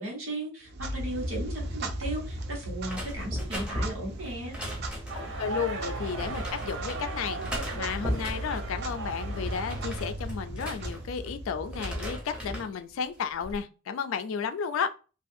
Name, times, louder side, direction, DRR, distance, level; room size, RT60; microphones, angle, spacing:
voice 1, 0.0-4.6, right 1 dB, 85° right, 1.2 m, -36 dB
Clock, 0.6-12.6, right 1 dB, 50° right, 0.4 m, -37 dB
sound 1, 2.8-5.3 6.1-7.0 7.4-8.7 9.1-11.3 11.6-12.7 13.2-13.6, equal, 5° right, 0.6 m, -37 dB
voice 2, 5.1-14.9, left 6 dB, 75° left, 0.3 m, -33 dB
sound 2, 5.1-10.1, right 3 dB, 70° right, 0.8 m, -38 dB
2.5 x 2.3 x 2.5 m
head